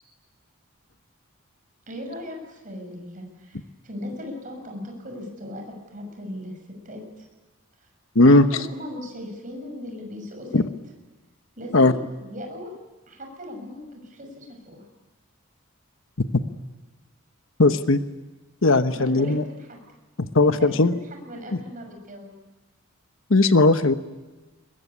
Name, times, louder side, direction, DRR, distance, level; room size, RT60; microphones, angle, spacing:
voice 1, 1.9-7.3 7.8-7.9 8.2-10.6 11.6-12.7 13.1-14.8 18.9-19.8 20.4-20.8 21.2-22.3, left 1 dB, 40° right, 3 dB, 6.4 m, -38 dB
voice 2, 8.1-8.5 10.5-10.6 11.7-11.9 17.6-18.0 18.6-19.4 20.2-20.9 23.3-23.9, left 2 dB, 65° left, 10 dB, 1.1 m, -17 dB
22.5 x 22.0 x 9.8 m, 1.2 s
head